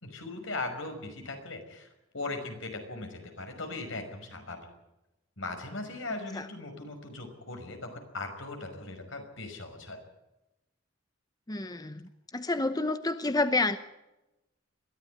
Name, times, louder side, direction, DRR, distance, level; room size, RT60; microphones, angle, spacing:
voice 1, 0.0-4.6 5.4-10.0, left 2 dB, 75° left, 5 dB, 5.6 m, -39 dB
voice 2, 11.5-13.8, left 2 dB, 20° left, 10 dB, 0.8 m, -29 dB
22.0 x 15.0 x 9.5 m, 0.96 s
head